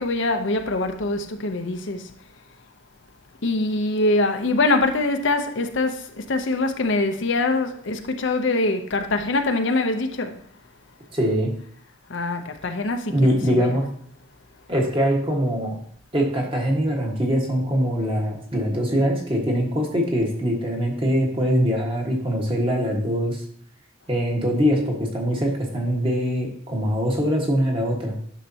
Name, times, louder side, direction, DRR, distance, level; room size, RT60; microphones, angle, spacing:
voice 1, 0.0-2.1 3.4-10.4 12.1-13.2 13.5-13.8, left 2 dB, 65° left, 0.7 m, -23 dB
voice 2, 11.1-11.5 13.1-13.9 14.7-15.8 16.1-23.4 24.1-28.1, equal, 25° right, 1.5 m, -23 dB
10.0 x 6.6 x 2.8 m
head